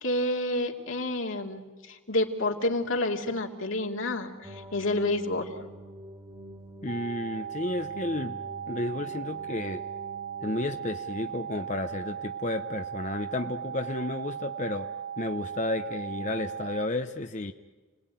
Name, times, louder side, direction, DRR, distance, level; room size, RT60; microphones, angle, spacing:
voice 1, 0.0-5.5, left 1 dB, 85° left, 2 dB, 2.7 m, -29 dB
sound 1, 4.4-11.5, equal, 20° right, 3.3 m, -47 dB
voice 2, 6.8-8.4 8.7-9.8 10.4-14.9 15.2-17.5, left 2 dB, 35° left, 6 dB, 0.8 m, -32 dB
sound 2, 6.9-16.9, right 8 dB, 50° right, 1.5 m, -37 dB
30.0 x 19.5 x 9.2 m, 1.4 s
head